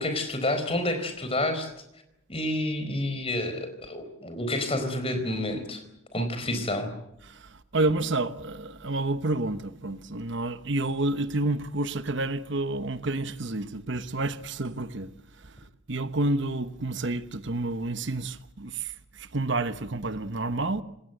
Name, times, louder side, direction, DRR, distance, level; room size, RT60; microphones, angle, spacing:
voice 1, 0.0-1.7 2.3-5.8 6.1-6.9, left 1 dB, 25° left, 4.4 m, -29 dB
voice 2, 7.3-15.1 15.9-18.9 19.2-20.8, right 2 dB, 55° right, 1.1 m, -29 dB
27.5 x 20.5 x 8.0 m
head